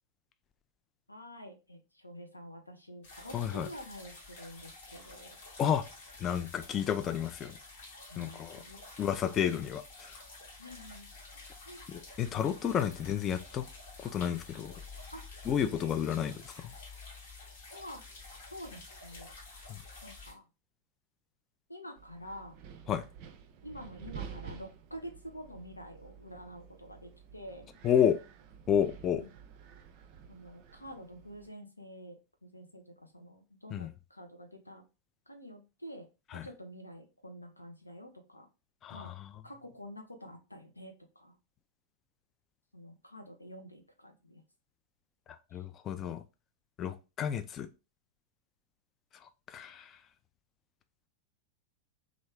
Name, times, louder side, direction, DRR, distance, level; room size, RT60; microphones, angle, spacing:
voice 1, 1.1-5.4 8.1-8.8 10.6-11.1 11.6-11.9 12.5-12.6 15.1-15.2 15.5-15.7 17.7-18.0 18.5-19.6 20.0-20.4 21.7-22.6 23.6-27.7 29.2-29.3 30.3-34.8 35.3-36.1 36.3-38.5 38.9-39.1 39.4-41.4 42.7-44.4 45.5-45.6, equal, 85° left, 0.6 m, -48 dB
sound 1, 3.0-20.3, left 3 dB, 55° left, 1.0 m, -50 dB
voice 2, 3.3-3.7 5.6-5.9 6.2-7.6 8.2-8.6 9.0-10.2 11.9-13.7 14.0-14.7 15.5-16.7 19.7-19.8 22.9-23.0 27.8-28.2 28.7-29.3 33.7-33.9 36.3-36.5 38.8-39.3 45.3-46.2 46.8-47.7 49.1-50.0, left 9 dB, 30° left, 0.3 m, -31 dB
Wind, 22.0-31.5, right 7 dB, 45° right, 0.4 m, -50 dB
3.0 x 2.5 x 3.4 m
figure-of-eight pair, 90°, 0 cm